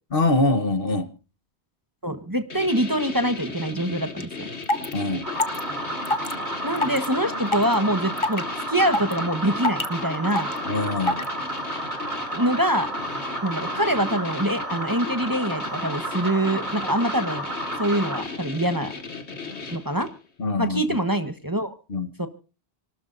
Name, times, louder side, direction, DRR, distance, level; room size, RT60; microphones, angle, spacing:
voice 1, 0.1-1.1 4.9-5.3 10.6-11.2 20.4-21.0 21.9-22.1, left 2 dB, 55° left, 1.4 m, -24 dB
voice 2, 2.0-4.3 6.6-10.5 12.3-12.9 13.4-17.5 17.8-18.9 19.7-20.1 20.6-21.7 22.2-22.3, right 1 dB, 20° right, 1.2 m, -24 dB
sound 1, 2.5-20.2, left 4 dB, 80° left, 2.3 m, -36 dB
sound 2, 4.2-4.3 4.6-4.9 5.4-5.6 6.0-6.3 6.8-7.1 7.5-7.7 8.2-8.4 8.9-9.2 9.6-9.9 10.4-10.6 11.1-11.3, left 2 dB, 30° left, 1.0 m, -23 dB
sound 3, 5.2-18.2, right 1 dB, 40° right, 3.2 m, -32 dB
29.5 x 13.0 x 2.6 m
omnidirectional pair, 1.1 m